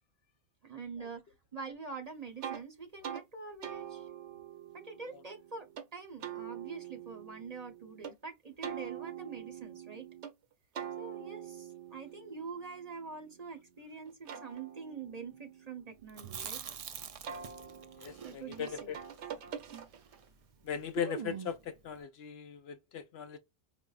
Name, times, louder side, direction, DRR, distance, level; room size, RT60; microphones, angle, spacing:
voice 1, 0.6-1.2 1.5-4.1 4.7-5.7 5.9-10.0 11.0-16.6 18.2-19.0, right 5 dB, 40° right, 0.7 m, -45 dB
sound 1, 2.4-2.6 3.0-3.3 3.6-5.9 6.2-8.1 8.6-10.3 10.8-13.6 14.1-16.7 17.2-20.3, right 9 dB, 90° right, 1.0 m, -45 dB
Chewing mastication, 16.1-20.3 20.5-20.6 20.9-21.7, right 7 dB, 70° right, 0.3 m, -44 dB
voice 2, 18.0-19.0 20.6-23.4, left 8 dB, 70° left, 0.8 m, -39 dB
5.2 x 2.1 x 2.3 m
omnidirectional pair, 1.2 m